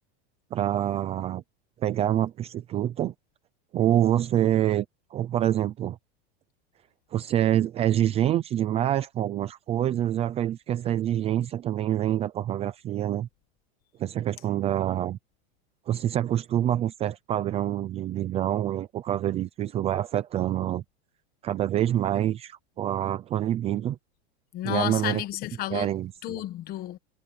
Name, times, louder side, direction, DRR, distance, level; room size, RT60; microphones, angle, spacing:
voice 1, 0.5-1.4 1.8-3.1 3.7-4.9 5.1-6.0 7.1-13.3 14.0-15.2 15.9-20.8 21.4-24.0 24.6-25.2 25.7-26.4, right 11 dB, 20° right, 0.6 m, -26 dB
voice 2, 24.5-25.9 26.2-27.0, left 14 dB, 30° left, 1.3 m, -31 dB
supercardioid pair, 165°, 31 cm